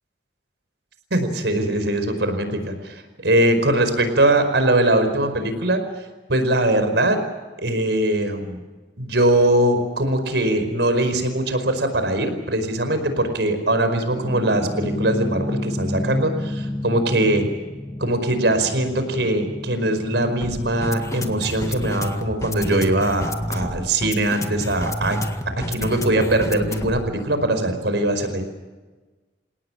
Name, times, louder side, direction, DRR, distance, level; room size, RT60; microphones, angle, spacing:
voice 1, 1.1-5.8 6.3-7.2 7.6-8.6 9.0-17.5 18.0-25.2 25.6-28.4, right 1 dB, 80° right, 8 dB, 5.0 m, -21 dB
sound 1, 14.1-27.1, left 1 dB, 20° left, 1.8 m, -30 dB
28.5 x 18.5 x 7.5 m, 1.3 s
head